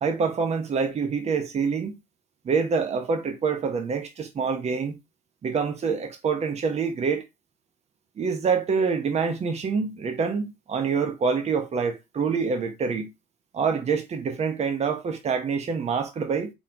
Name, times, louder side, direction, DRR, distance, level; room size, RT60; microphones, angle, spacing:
voice 1, 0.0-1.9 2.4-4.9 5.4-7.2 8.2-13.1 13.5-16.5, right 5 dB, 40° right, 1.1 m, -26 dB
4.2 x 3.9 x 2.9 m
cardioid pair, 110°, 17 cm